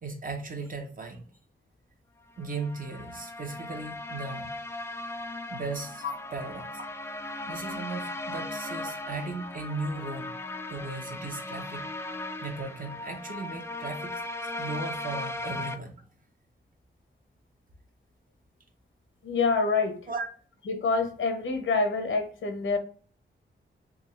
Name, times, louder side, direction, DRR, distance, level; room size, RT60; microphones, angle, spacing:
voice 1, 0.0-1.2 2.4-4.5 5.5-6.0 6.3-6.8 7.4-10.3 10.7-16.0 20.1-20.3, right 3 dB, 45° right, 4 dB, 0.8 m, -37 dB
sound 1, 2.4-15.8, left 2 dB, 15° left, 0.3 m, -37 dB
voice 2, 19.2-20.0 20.7-22.8, left 4 dB, 80° left, 6 dB, 0.8 m, -26 dB
3.5 x 2.8 x 3.1 m, 0.43 s
wide cardioid pair, 110°, 20 cm